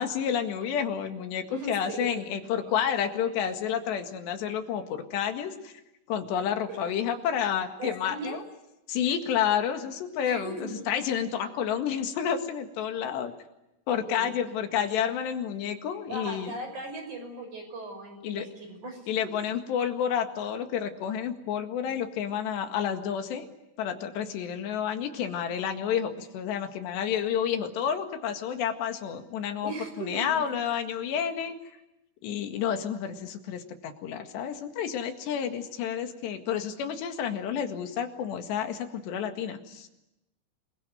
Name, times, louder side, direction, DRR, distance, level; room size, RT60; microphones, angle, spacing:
voice 1, 0.0-5.7 6.1-8.4 8.9-10.5 10.9-13.3 13.9-16.5 18.2-18.5 19.1-23.5 23.8-29.7 30.0-31.6 32.2-39.9, left 8 dB, 90° left, 6 dB, 4.1 m, -30 dB
voice 2, 1.5-2.1 2.6-2.7 6.7-6.8 7.8-8.4 10.2-10.8 14.1-14.3 16.1-19.3 29.6-30.5, right 2 dB, 45° right, 5 dB, 7.0 m, -38 dB
27.0 x 22.5 x 9.3 m, 0.91 s
omnidirectional pair, 4.8 m